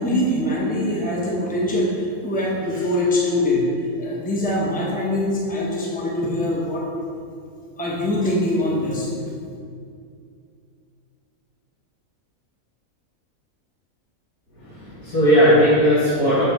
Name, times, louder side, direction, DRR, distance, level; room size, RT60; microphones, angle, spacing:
voice 1, 0.0-3.6 4.0-6.8 7.8-9.1, left 1 dB, 5° left, -5 dB, 0.9 m, -23 dB
voice 2, 14.5-16.4, equal, 75° left, -12 dB, 2.3 m, -17 dB
6.7 x 3.5 x 5.7 m, 2.4 s
omnidirectional pair, 1.5 m